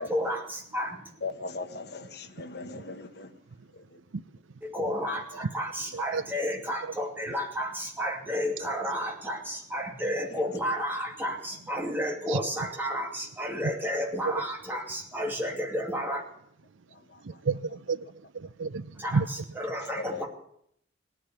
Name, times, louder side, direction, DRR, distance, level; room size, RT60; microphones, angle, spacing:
voice 1, 0.0-1.0 4.6-16.2 19.0-20.3, equal, 10° right, 0 dB, 2.5 m, -32 dB
voice 2, 1.2-3.3 10.2-10.4 17.1-17.2 20.0-20.2, left 3 dB, 55° left, 6 dB, 1.3 m, -38 dB
voice 3, 17.2-18.0 18.3-19.3, right 4 dB, 85° right, 16 dB, 0.6 m, -30 dB
17.5 x 9.9 x 8.1 m, 0.69 s
head